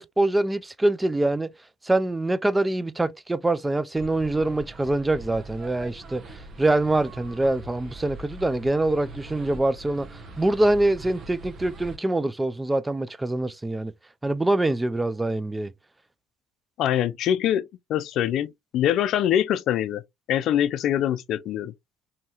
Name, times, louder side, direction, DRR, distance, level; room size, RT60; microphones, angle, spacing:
voice 1, 0.0-1.5 1.8-13.9 14.2-15.7, right 2 dB, 15° right, 0.3 m, -24 dB
sound 1, 4.0-12.0, right 2 dB, 45° right, 0.9 m, -42 dB
voice 2, 16.8-17.6 17.9-20.0 20.3-21.7, left 11 dB, 60° left, 0.4 m, -24 dB
2.8 x 2.8 x 2.3 m
supercardioid pair, 75°, 0 cm